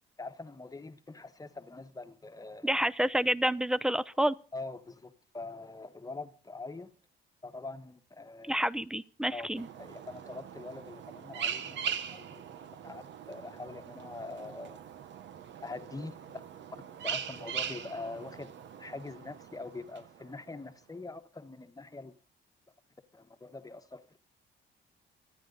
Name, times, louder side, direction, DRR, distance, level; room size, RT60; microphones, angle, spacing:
voice 1, 0.2-2.8 4.5-6.9 7.4-8.6 9.3-9.5 9.8-12.5 12.8-14.8 15.6-16.2 17.0-22.2 23.1-24.2, left 3 dB, 15° left, 1.3 m, -44 dB
voice 2, 2.6-4.3 8.5-9.7, right 1 dB, 5° right, 0.7 m, -29 dB
sound 1, 9.6-20.5, right 8 dB, 65° right, 1.1 m, -41 dB
24.5 x 9.7 x 4.0 m
cardioid pair, 90°, 20 cm